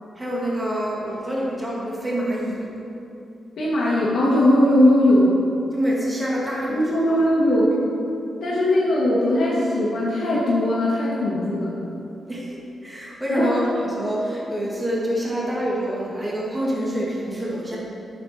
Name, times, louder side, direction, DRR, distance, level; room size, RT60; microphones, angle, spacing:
voice 1, 0.2-2.7 5.7-6.8 7.1-7.2 12.3-12.6 12.8-17.8, equal, 15° right, -5 dB, 1.8 m, -26 dB
voice 2, 3.6-5.4 6.7-7.7 8.4-12.0 13.3-13.5, left 1 dB, 75° left, -7 dB, 1.4 m, -19 dB
8.4 x 6.5 x 4.1 m, 2.7 s
cardioid pair, 110°, 0 cm